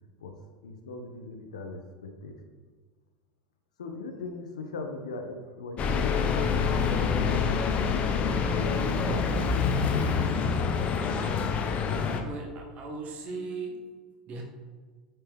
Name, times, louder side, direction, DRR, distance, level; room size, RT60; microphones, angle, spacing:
voice 1, 0.6-2.3 3.8-9.6, left 2 dB, 65° left, 4 dB, 0.8 m, -40 dB
sound 1, 5.8-12.2, left 5 dB, 30° left, 0.7 m, -26 dB
voice 2, 12.2-13.9 14.3-14.4, right 3 dB, 35° right, 1 dB, 1.3 m, -37 dB
8.7 x 4.5 x 3.4 m, 1.4 s
figure-of-eight pair, 80°, 4 cm